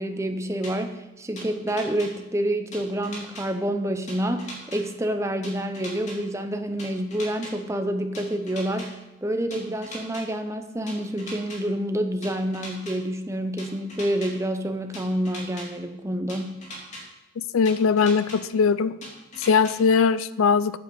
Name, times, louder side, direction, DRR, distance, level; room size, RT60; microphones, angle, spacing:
voice 1, 0.0-16.6, right 1 dB, 15° right, 7 dB, 0.8 m, -28 dB
sound 1, 0.6-0.7 1.4-2.1 2.7-3.4 4.1-4.8 5.4-6.2 6.8-7.5 8.1-8.9 9.5-10.2 10.9-11.6 12.2-12.9 13.6-14.3 14.9-15.7 16.3-17.0 17.7-18.4 19.0-19.7, left 1 dB, 35° left, 2.9 m, -39 dB
voice 2, 17.4-19.0 19.4-20.8, left 5 dB, 85° left, 16 dB, 0.4 m, -21 dB
9.1 x 8.3 x 7.6 m, 0.99 s
head